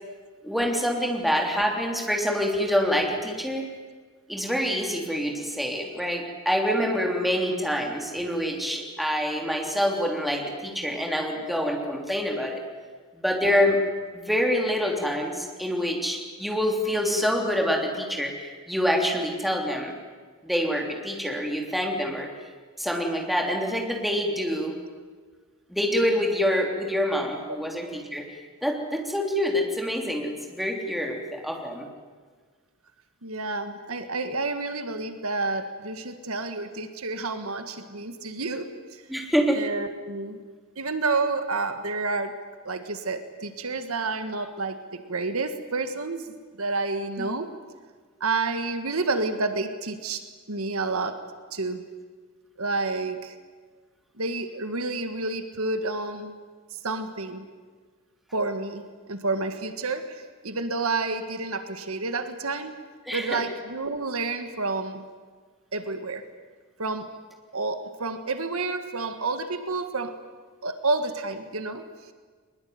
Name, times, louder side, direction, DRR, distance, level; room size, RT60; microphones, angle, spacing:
voice 1, 0.4-3.7 4.3-12.6 13.1-13.8 14.1-19.9 20.4-22.3 22.8-24.7 25.7-28.3 28.6-31.9 39.1-39.6 47.2-47.3 63.1-63.4, equal, ahead, 1 dB, 3.4 m, -26 dB
voice 2, 33.2-39.0 39.5-40.4 40.7-42.3 42.6-47.5 48.2-51.2 51.5-51.8 52.6-53.3 54.2-56.3 56.8-57.4 58.3-62.8 63.1-65.0 65.7-66.3 66.8-67.1 67.5-70.2 70.6-71.8, right 3 dB, 70° right, 8 dB, 1.7 m, -29 dB
22.5 x 21.5 x 9.5 m, 1.5 s
head